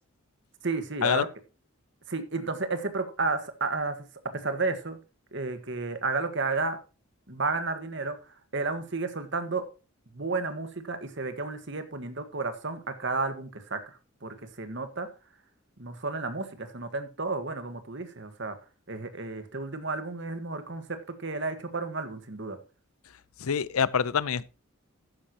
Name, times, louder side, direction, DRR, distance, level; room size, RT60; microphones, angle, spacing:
voice 1, 0.6-1.3 2.1-4.0 4.3-5.0 5.3-6.8 7.3-8.1 8.5-9.7 10.1-15.1 15.8-18.6 18.9-22.6, right 3 dB, 55° right, 1.6 m, -32 dB
voice 2, 23.4-24.5, left 6 dB, 90° left, 0.6 m, -26 dB
12.5 x 9.9 x 3.0 m
head